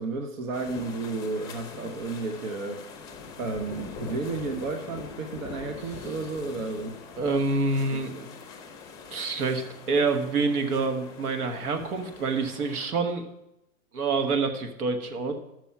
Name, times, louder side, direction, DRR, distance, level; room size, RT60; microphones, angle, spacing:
voice 1, 0.0-2.8 3.4-7.0 7.9-8.3, right 3 dB, 60° right, 4 dB, 1.1 m, -32 dB
sound 1, 0.5-12.9, left 5 dB, 10° left, 0.7 m, -43 dB
voice 2, 7.2-8.1 9.1-13.3 13.9-15.3, right 3 dB, 75° right, 6 dB, 1.4 m, -27 dB
8.3 x 6.2 x 5.8 m, 0.87 s
hypercardioid pair, 150°, 45 cm